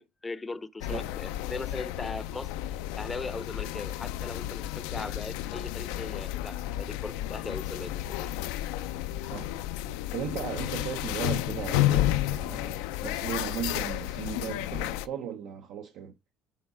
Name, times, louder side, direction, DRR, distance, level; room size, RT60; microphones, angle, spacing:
voice 1, 0.0-8.3, left 3 dB, 20° left, 0.5 m, -39 dB
sound 1, 0.8-15.1, left 13 dB, 90° left, 0.4 m, -32 dB
voice 2, 9.9-16.1, right 9 dB, 70° right, 0.7 m, -37 dB
6.5 x 4.0 x 3.7 m
cardioid pair, 105°, 0 cm